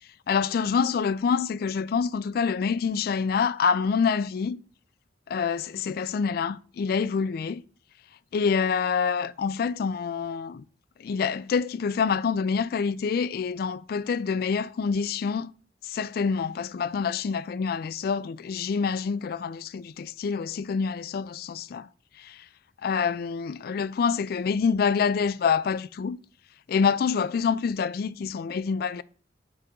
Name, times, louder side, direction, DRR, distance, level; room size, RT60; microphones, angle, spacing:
voice 1, 0.3-4.6 5.3-7.6 8.3-10.6 11.0-15.5 15.8-21.9 22.2-22.4 22.8-26.2 26.7-29.0, left 6 dB, 55° left, 0.3 m, -26 dB
8.6 x 3.5 x 5.1 m
head